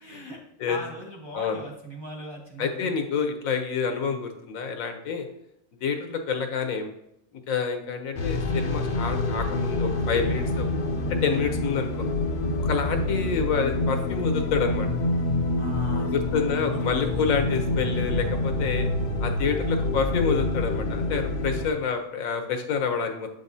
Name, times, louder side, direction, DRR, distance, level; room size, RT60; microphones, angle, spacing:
voice 1, 0.0-0.4 0.7-2.9 15.6-16.1 16.7-17.5, right 1 dB, 25° right, -1 dB, 0.8 m, -39 dB
voice 2, 2.6-5.2 5.8-6.9 7.5-10.7 11.2-11.9 12.6-14.9 16.1-18.9 19.2-23.3, left 6 dB, 90° left, 6 dB, 1.2 m, -28 dB
sound 1, 8.2-21.7, left 2 dB, 55° left, 0.5 m, -27 dB
7.5 x 5.1 x 2.7 m, 0.78 s
omnidirectional pair, 1.4 m